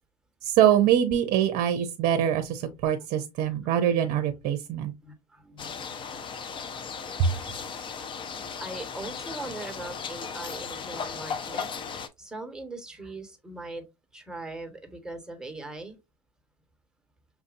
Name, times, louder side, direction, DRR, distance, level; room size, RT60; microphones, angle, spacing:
voice 1, 0.4-4.9 7.2-7.4, right 10 dB, 45° right, 0.7 m, -24 dB
voice 2, 3.4-3.8 4.7-6.3 6.7-7.3 8.6-11.7 12.2-13.8 14.1-16.0, right 2 dB, 5° right, 1.3 m, -41 dB
sound 1, 5.6-12.1, left 6 dB, 25° left, 0.6 m, -36 dB
5.9 x 2.6 x 2.5 m
hypercardioid pair, 90°, 20 cm